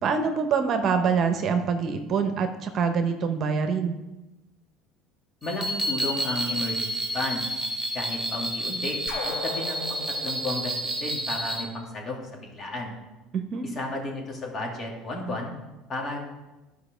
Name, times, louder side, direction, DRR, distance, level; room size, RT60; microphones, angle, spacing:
voice 1, 0.0-4.0 13.3-13.7, right 5 dB, 50° right, 7 dB, 0.9 m, -25 dB
voice 2, 5.4-7.5 7.9-9.0 9.2-12.9 13.6-15.5 15.9-16.2, left 2 dB, 40° left, 0 dB, 2.5 m, -33 dB
sound 1, 5.4-11.6, right 1 dB, 10° right, 2.4 m, -30 dB
sound 2, 9.1-11.9, left 3 dB, 65° left, 1.7 m, -38 dB
11.5 x 5.1 x 5.1 m, 1.1 s
supercardioid pair, 90°, 0 cm